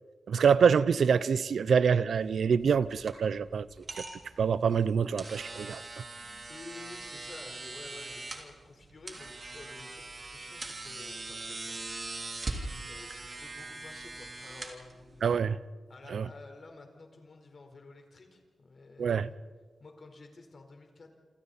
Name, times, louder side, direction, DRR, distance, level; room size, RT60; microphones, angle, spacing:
voice 1, 0.3-3.7 3.9-4.1 4.4-5.8 15.2-15.6 16.1-16.3 19.0-19.3, right 6 dB, 80° right, 0.7 m, -25 dB
sound 1, 2.1-15.4, right 2 dB, 40° right, 3.3 m, -42 dB
voice 2, 6.5-11.8 12.8-15.3 15.9-19.4 19.8-21.1, left 3 dB, 50° left, 4.2 m, -51 dB
28.0 x 27.5 x 4.2 m
wide cardioid pair, 115°, 0 cm